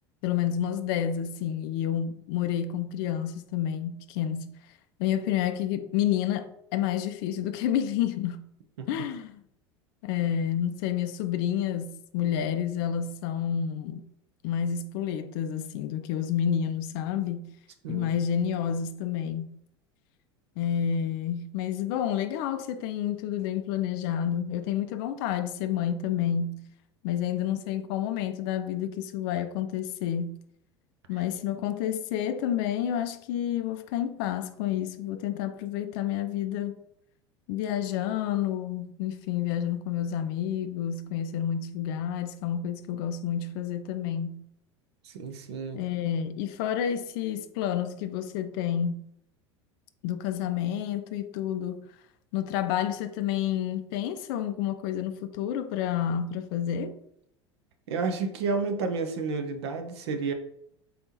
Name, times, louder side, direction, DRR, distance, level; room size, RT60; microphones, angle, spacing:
voice 1, 0.2-4.6 5.0-8.5 8.9-9.4 10.0-14.1 14.4-17.6 17.9-19.6 20.6-26.7 27.0-30.4 31.1-36.8 37.5-44.5 45.7-49.1 50.0-51.9 52.3-57.0, left 9 dB, 50° left, 0.4 m, -29 dB
voice 2, 45.0-45.8 57.9-60.3, right 4 dB, 65° right, 0.7 m, -31 dB
4.1 x 3.4 x 2.8 m
figure-of-eight pair, 80°, 15 cm